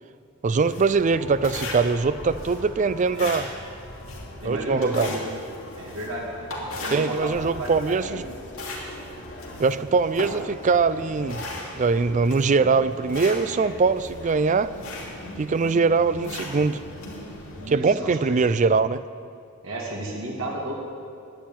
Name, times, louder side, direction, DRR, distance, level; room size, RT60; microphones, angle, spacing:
voice 1, 0.4-3.5 4.4-5.1 6.9-8.2 9.6-11.4 11.8-14.7 15.4-16.8 17.7-19.0, right 4 dB, 35° right, 15 dB, 0.4 m, -22 dB
sound 1, 0.6-17.7, left 2 dB, 70° left, 2.9 m, -37 dB
voice 2, 4.4-5.2 5.8-6.3 6.7-8.3 13.4-13.7 17.6-18.4 19.6-20.7, right 1 dB, 65° right, -2 dB, 2.1 m, -33 dB
11.5 x 9.3 x 9.0 m, 2.4 s
head